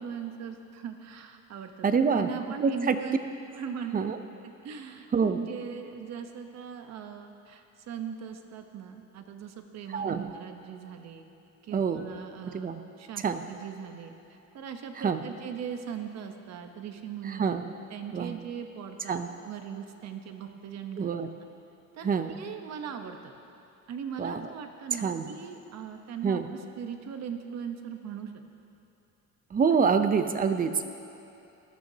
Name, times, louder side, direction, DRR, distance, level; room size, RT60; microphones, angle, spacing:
voice 1, 0.0-3.2 3.6-4.0 4.6-11.3 11.6-12.7 13.0-14.1 14.5-17.5 17.9-21.1 22.0-23.3 23.9-28.3 29.8-29.9, right 7 dB, 55° right, 6 dB, 1.1 m, -39 dB
voice 2, 1.8-2.3 2.6-3.0 3.9-4.2 5.1-5.4 9.9-10.2 11.7-12.1 12.5-12.8 13.2-13.4 15.0-15.2 17.3-17.6 18.1-18.3 19.1-19.3 21.0-21.3 22.0-22.3 24.2-24.5 25.0-25.3 26.2-26.5 29.5-30.9, right 6 dB, 25° right, 8 dB, 0.7 m, -26 dB
18.5 x 12.5 x 2.9 m, 2.9 s
cardioid pair, 125°, 31 cm